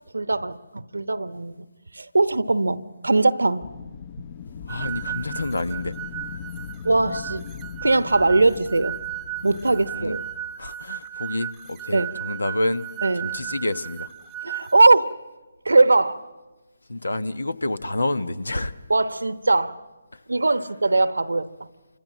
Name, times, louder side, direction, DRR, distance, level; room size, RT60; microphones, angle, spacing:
voice 1, 0.1-1.5 1.9-3.6 6.8-7.4 7.8-9.0 9.4-10.2 11.9-12.2 13.0-13.3 14.4-15.1 15.6-16.2 18.9-19.7 20.3-21.7, right 2 dB, 80° right, 1.1 m, -20 dB
Wind, 3.6-10.5, left 7 dB, 35° left, 0.8 m, -39 dB
voice 2, 4.7-5.9 9.9-10.2 10.6-12.9 13.2-14.1 16.9-18.7, left 1 dB, 80° left, 1.1 m, -28 dB
sound 1, 4.7-14.7, right 11 dB, 15° right, 0.9 m, -35 dB
28.0 x 25.0 x 7.5 m
figure-of-eight pair, 145°, 0 cm